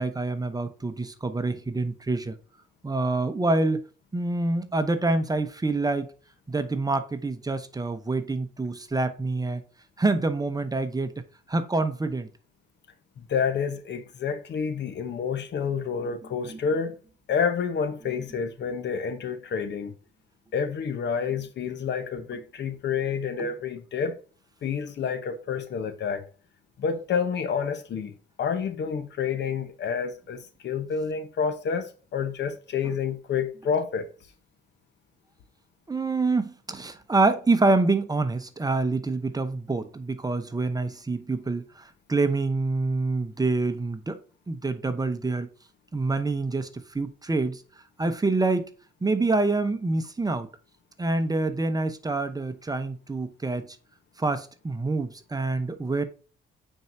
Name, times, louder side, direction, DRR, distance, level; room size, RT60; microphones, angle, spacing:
voice 1, 0.0-2.4 2.8-3.8 4.1-6.1 6.5-9.6 10.0-11.1 11.5-12.3 16.0-16.1 16.4-16.6 23.4-23.5 32.8-32.9 35.9-44.2 44.5-45.5 45.9-46.7 46.9-47.6 48.0-48.7 49.0-50.5 51.0-53.7 54.2-56.0, right 3 dB, 20° right, 0.9 m, -26 dB
voice 2, 13.2-17.0 17.3-19.9 20.5-24.2 24.6-26.2 26.8-28.1 28.4-34.1, left 6 dB, 60° left, 1.1 m, -29 dB
9.1 x 4.6 x 2.7 m
cardioid pair, 90°, 20 cm